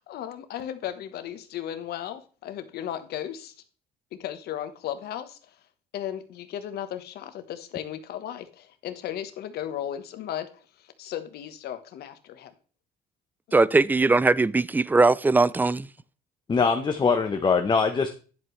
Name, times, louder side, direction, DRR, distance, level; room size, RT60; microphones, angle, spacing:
voice 1, 0.0-3.5 4.1-5.5 5.9-10.5 10.8-12.5 13.5-13.6, left 10 dB, 70° left, 1.2 m, -35 dB
voice 2, 13.5-15.9, right 3 dB, 10° right, 0.3 m, -20 dB
voice 3, 16.5-18.1, left 5 dB, 25° left, 0.9 m, -22 dB
10.0 x 7.8 x 3.2 m
cardioid pair, 110°, 17 cm